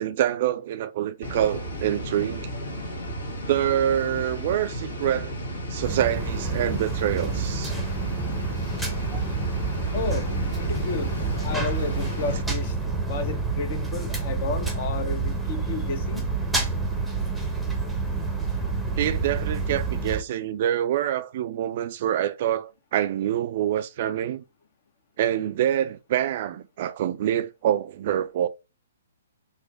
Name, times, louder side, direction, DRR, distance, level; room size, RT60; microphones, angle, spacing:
voice 1, 0.0-2.5 3.5-5.3 5.7-7.7 19.0-24.4 25.2-28.5, right 11 dB, 45° right, 0.4 m, -26 dB
sound 1, 1.2-12.4, right 1 dB, 75° left, 1.6 m, -33 dB
sound 2, 5.8-20.2, right 4 dB, ahead, 0.8 m, -28 dB
voice 2, 9.9-10.3 10.6-11.1 11.4-16.3, left 4 dB, 45° left, 0.9 m, -32 dB
4.7 x 2.1 x 3.8 m
figure-of-eight pair, 125°, 0 cm